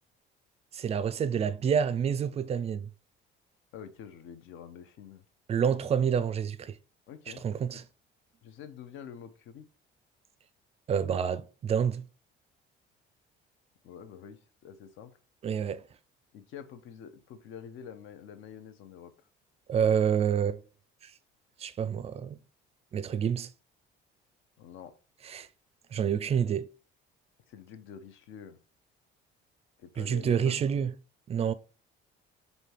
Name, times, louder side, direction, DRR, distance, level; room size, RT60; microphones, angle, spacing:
voice 1, 0.7-2.9 5.5-6.8 7.4-7.8 10.9-12.0 15.4-15.8 19.7-20.6 21.6-22.4 22.9-23.5 25.2-25.5 25.9-26.7 30.0-30.9 31.3-31.5, right 7 dB, 30° right, 0.3 m, -28 dB
voice 2, 3.7-5.2 7.1-7.4 7.7-7.8 8.4-9.7 13.8-15.2 16.3-19.1 24.6-24.9 27.5-28.6 29.8-30.5, left 8 dB, 70° left, 0.7 m, -47 dB
3.3 x 2.7 x 4.4 m
cardioid pair, 120°, 20 cm